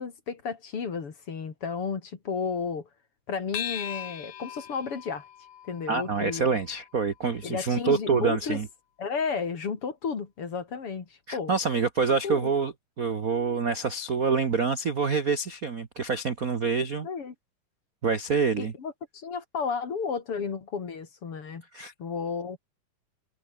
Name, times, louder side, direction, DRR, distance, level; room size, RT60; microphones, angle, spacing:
voice 1, 0.0-2.9 3.3-5.2 5.6-6.5 7.4-8.6 9.0-11.5 12.2-12.5 16.8-17.3 18.6-21.6 22.0-22.6, left 5 dB, 45° left, 3.2 m, -33 dB
sound 1, 3.5-8.3, left 10 dB, 85° left, 3.6 m, -41 dB
voice 2, 5.9-8.7 11.3-12.7 13.0-17.1 18.0-18.7 21.7-21.9, right 5 dB, 55° right, 0.9 m, -26 dB
omnidirectional pair, 3.9 m